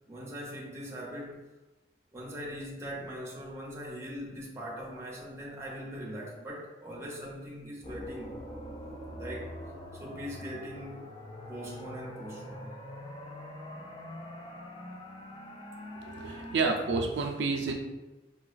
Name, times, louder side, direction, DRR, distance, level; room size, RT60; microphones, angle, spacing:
voice 1, 0.1-1.4 2.1-8.4 9.1-9.6 10.0-11.1 11.5-12.8, equal, 15° right, -3 dB, 0.6 m, -41 dB
sound 1, 7.8-16.6, left 1 dB, 30° left, 0.3 m, -44 dB
voice 2, 16.0-17.7, right 4 dB, 90° right, 3 dB, 0.4 m, -29 dB
4.0 x 2.3 x 2.3 m, 1.1 s
head